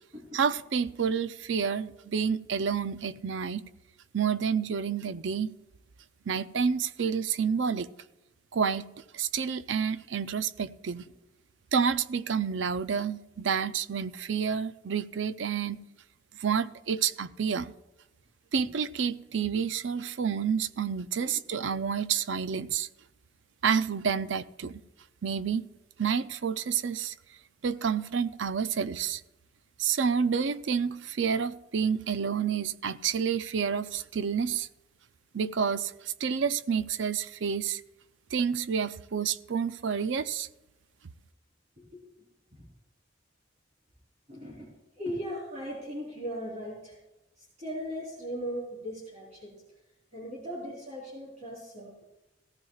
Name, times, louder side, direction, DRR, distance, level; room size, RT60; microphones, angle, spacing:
voice 1, 0.3-3.6 4.1-5.5 6.3-7.9 8.5-11.0 11.7-15.8 16.3-17.7 18.5-22.9 23.6-24.7 25.2-25.7 26.0-27.1 27.6-29.2 29.8-34.7 35.3-37.8 38.3-40.5, right 6 dB, 75° right, 0.5 m, -29 dB
voice 2, 44.3-44.7 45.0-47.0 47.4-49.6 50.1-52.0, equal, 35° right, 3.6 m, -38 dB
18.0 x 15.0 x 2.4 m
head